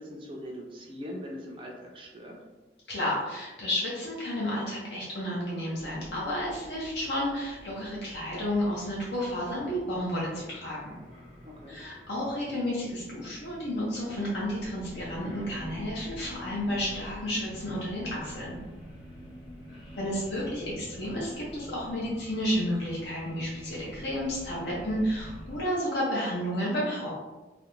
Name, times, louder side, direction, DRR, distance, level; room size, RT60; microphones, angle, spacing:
voice 1, 0.0-2.4 11.4-11.8, equal, 30° right, -1 dB, 0.4 m, -41 dB
voice 2, 2.9-10.9 11.7-18.6 20.0-27.1, equal, 70° left, -6 dB, 0.6 m, -31 dB
sound 1, 5.8-25.6, equal, 30° left, 0.8 m, -46 dB
2.4 x 2.0 x 2.9 m, 1.2 s
head